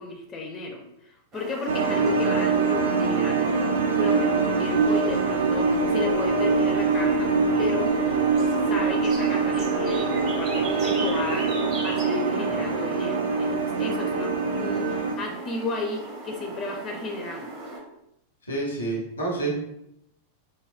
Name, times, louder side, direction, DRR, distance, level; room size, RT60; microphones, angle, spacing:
voice 1, 0.0-3.4 3.9-8.0 8.5-17.5, left 2 dB, 25° left, 1 dB, 0.4 m, -34 dB
sound 1, 1.3-17.8, right 2 dB, 35° right, 0.6 m, -36 dB
sound 2, 1.7-15.1, right 4 dB, 70° right, 0.3 m, -24 dB
sound 3, 4.2-12.0, left 4 dB, 85° right, 1.4 m, -41 dB
voice 2, 18.5-19.6, right 3 dB, 80° left, -2 dB, 0.9 m, -28 dB
3.3 x 2.1 x 2.4 m, 0.80 s
figure-of-eight pair, 90°, 0 cm